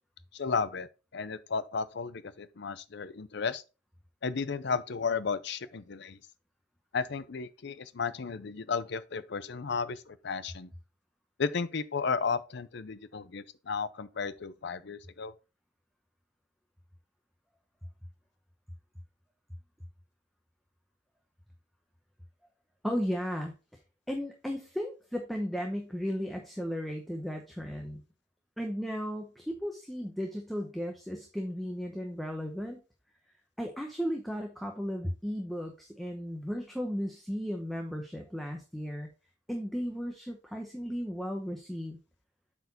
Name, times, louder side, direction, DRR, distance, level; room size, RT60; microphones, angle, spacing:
voice 1, 0.3-3.6 4.2-6.2 6.9-10.7 11.4-15.3, left 5 dB, 60° left, 0.6 m, -34 dB
voice 2, 22.8-23.5 24.1-28.0 28.6-32.8 33.6-39.1 39.5-42.0, equal, ahead, 0.8 m, -35 dB
7.9 x 4.5 x 4.1 m
head